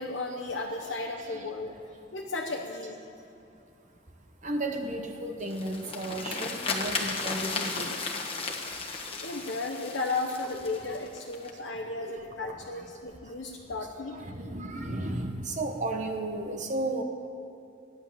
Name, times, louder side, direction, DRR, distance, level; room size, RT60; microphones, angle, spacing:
voice 1, 0.0-1.7 2.1-3.0 9.2-14.1, left 3 dB, 70° left, -2 dB, 1.1 m, -34 dB
voice 2, 0.8-1.5 4.4-7.9 10.6-11.0 12.0-12.3 12.7-12.8 14.1-17.0, right 1 dB, 40° right, 4 dB, 1.0 m, -34 dB
sound 1, 5.4-11.5, left 4 dB, 30° left, 1.3 m, -35 dB
14.5 x 10.5 x 7.5 m, 2.6 s
head